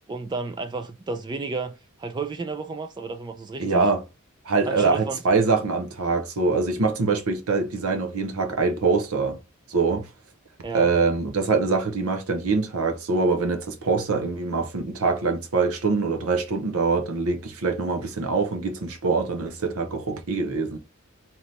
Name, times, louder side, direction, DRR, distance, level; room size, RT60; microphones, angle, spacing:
voice 1, 0.1-3.9 4.6-5.2 10.6-10.9, right 4 dB, 20° right, 0.3 m, -32 dB
voice 2, 3.6-4.0 4.4-9.4 9.7-10.1 10.7-20.8, right 4 dB, 85° right, 0.7 m, -24 dB
3.2 x 2.9 x 3.9 m
head